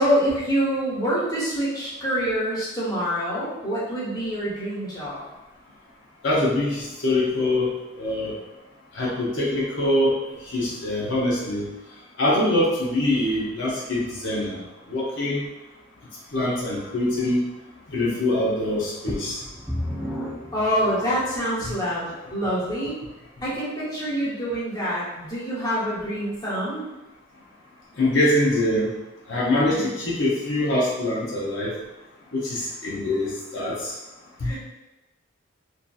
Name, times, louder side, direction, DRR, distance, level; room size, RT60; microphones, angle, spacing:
voice 1, 0.0-5.2 20.5-23.0 23.4-26.8 29.7-29.9 34.4-34.6, equal, 20° left, -8 dB, 0.8 m, -26 dB
voice 2, 6.2-8.3 8.9-10.1 10.5-11.7 12.2-14.6 14.9-15.4 16.3-17.4 17.9-19.4 21.6-21.7 28.0-28.9 29.3-31.7 32.3-33.9 34.4-34.6, left 1 dB, 65° left, -6 dB, 0.6 m, -24 dB
sound 1, 19.1-21.5 22.2-22.3 22.9-23.0, equal, ahead, 0.3 m, -33 dB
2.6 x 2.4 x 2.3 m, 1.0 s
head